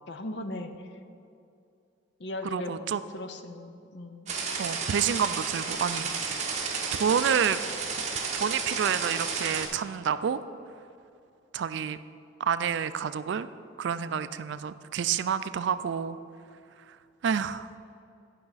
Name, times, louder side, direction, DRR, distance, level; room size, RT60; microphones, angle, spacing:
voice 1, 0.1-0.7 2.2-2.7 3.1-4.3, left 2 dB, 55° left, 8 dB, 0.6 m, -37 dB
voice 2, 2.4-3.0 4.6-6.5 7.0-7.6 8.3-10.4 11.5-12.0 12.4-13.5 13.8-16.2 16.9-17.0 17.2-17.7, right 7 dB, 65° right, 13 dB, 0.3 m, -29 dB
sound 1, 4.3-9.7, right 5 dB, 35° right, 0.9 m, -32 dB
11.0 x 5.7 x 4.0 m, 2.5 s
head